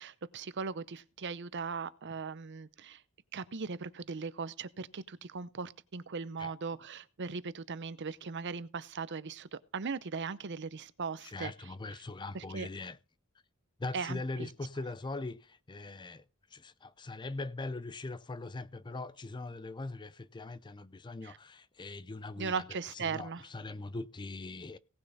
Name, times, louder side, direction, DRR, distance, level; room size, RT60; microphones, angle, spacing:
voice 1, 0.0-3.0 3.3-11.5 12.3-12.7 13.9-14.5 21.2-21.4 22.4-23.4, right 5 dB, 55° right, 0.7 m, -38 dB
voice 2, 11.2-13.0 13.8-16.2 16.5-22.6 23.0-24.8, left 3 dB, 20° left, 0.4 m, -41 dB
17.5 x 6.6 x 4.0 m
head